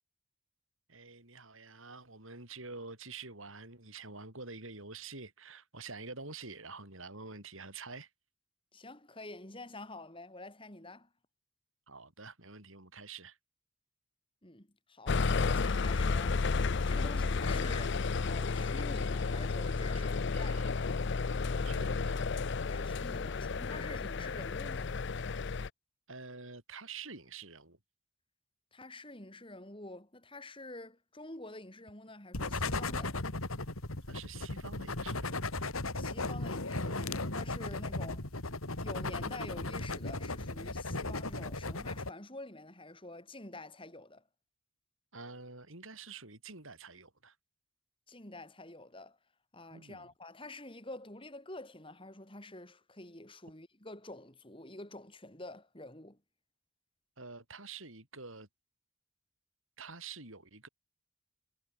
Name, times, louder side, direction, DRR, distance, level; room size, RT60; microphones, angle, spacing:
voice 1, 0.9-8.1 11.9-13.4 17.5-17.8 19.9-20.1 20.3-20.7 21.6-22.2 24.2-24.3 26.1-27.8 34.1-35.5 45.1-47.4 49.7-50.1 57.2-58.5 59.8-60.7, right 4 dB, 75° right, 6.3 m, -47 dB
voice 2, 8.7-11.1 14.4-17.9 18.3-20.7 22.7-24.9 28.7-33.2 36.0-38.2 38.8-44.2 48.1-49.2 49.5-56.2, left 2 dB, 25° left, 4.2 m, -48 dB
sound 1, 15.1-25.7, left 4 dB, 55° left, 0.6 m, -32 dB
sound 2, 32.3-42.1, left 2 dB, 90° left, 3.2 m, -36 dB
head